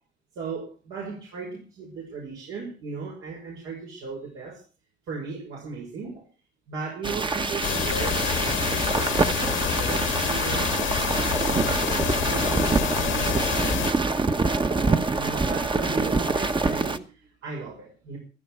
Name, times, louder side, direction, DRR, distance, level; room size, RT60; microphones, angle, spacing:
voice 1, 0.3-4.6 5.1-6.2 6.7-14.2 14.7-18.2, right 4 dB, 80° right, -3 dB, 6.3 m, -37 dB
sound 1, 7.0-17.0, right 3 dB, 25° right, 1.2 m, -25 dB
sound 2, 7.6-13.9, left 10 dB, 90° left, 1.9 m, -28 dB
15.0 x 14.0 x 4.9 m, 0.35 s
cardioid pair, 90°, 20 cm